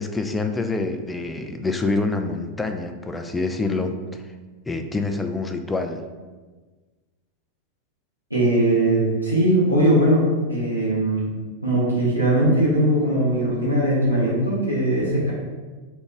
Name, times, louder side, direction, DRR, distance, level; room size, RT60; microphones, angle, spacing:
voice 1, 0.0-4.2 4.7-6.0, left 3 dB, 10° left, 6 dB, 0.3 m, -26 dB
voice 2, 8.3-11.3 11.6-15.3, right 1 dB, 90° right, -8 dB, 1.0 m, -20 dB
3.3 x 3.0 x 3.5 m, 1.3 s
figure-of-eight pair, 90°, 0 cm